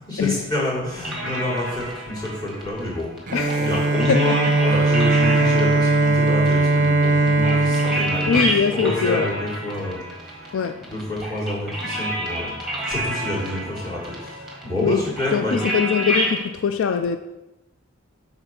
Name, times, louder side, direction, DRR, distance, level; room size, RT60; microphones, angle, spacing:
voice 1, 0.0-3.1 3.6-10.0 10.3-10.4 10.8-15.7, left 1 dB, 20° left, 2.1 m, -28 dB
sound 1, 1.0-16.4, right 1 dB, ahead, 1.4 m, -30 dB
voice 2, 3.3-3.8 4.1-4.4 8.3-9.3 10.5-10.8 14.8-15.0 15.3-17.2, left 6 dB, 70° left, 0.3 m, -22 dB
Bowed string instrument, 3.3-9.3, right 3 dB, 40° right, 0.6 m, -20 dB
6.7 x 4.0 x 5.8 m
head